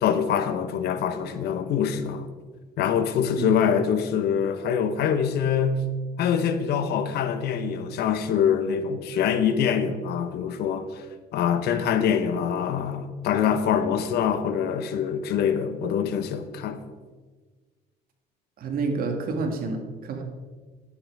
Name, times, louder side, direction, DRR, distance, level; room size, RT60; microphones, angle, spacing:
voice 1, 0.0-2.3 2.8-5.8 6.2-10.9 11.3-16.8, left 8 dB, 75° left, 1.0 m, -24 dB
voice 2, 18.6-20.2, right 4 dB, 60° right, 2.1 m, -29 dB
11.5 x 8.7 x 4.8 m
cardioid pair, 110°, 17 cm